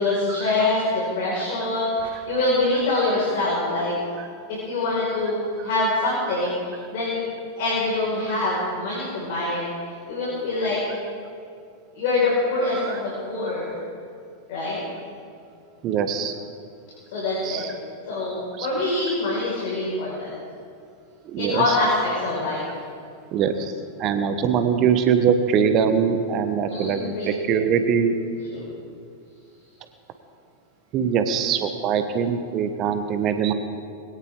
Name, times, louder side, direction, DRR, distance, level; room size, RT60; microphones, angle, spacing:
voice 1, 0.0-3.9 4.5-7.2 7.6-9.7 10.1-10.8 12.0-13.8 14.5-14.8 17.1-17.6 18.1-20.3 21.4-22.7 26.7-27.3 28.5-28.7, left 2 dB, 50° left, -5 dB, 5.3 m, -24 dB
voice 2, 15.8-16.3 17.4-17.7 18.6-18.7 21.3-21.8 23.3-23.7 24.0-28.1 30.9-33.5, right 7 dB, 35° right, 8 dB, 1.2 m, -22 dB
21.5 x 17.0 x 3.8 m, 2.4 s
figure-of-eight pair, 90°, 0 cm